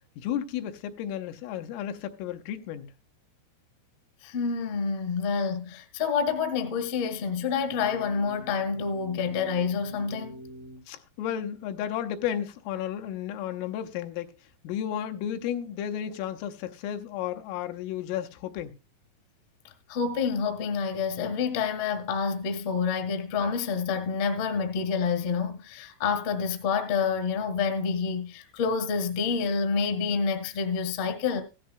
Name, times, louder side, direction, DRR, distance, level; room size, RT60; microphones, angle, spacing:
voice 1, 0.2-2.9 10.9-14.3 14.6-18.8, left 10 dB, 90° left, 3.4 m, -33 dB
voice 2, 4.2-10.4 19.6-31.4, left 5 dB, 75° left, 1.4 m, -28 dB
sound 1, 7.6-10.8, equal, 80° right, 1.9 m, -45 dB
15.0 x 13.0 x 2.3 m
omnidirectional pair, 5.8 m